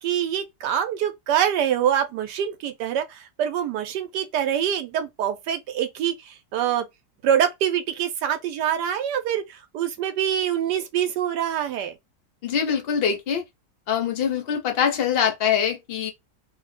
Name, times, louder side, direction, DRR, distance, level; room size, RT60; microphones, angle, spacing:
voice 1, 0.0-6.8 7.2-11.9, right 9 dB, 75° right, 1.2 m, -25 dB
voice 2, 12.4-13.4 13.9-16.1, left 8 dB, 60° left, 0.6 m, -23 dB
3.0 x 2.1 x 4.1 m
omnidirectional pair, 1.9 m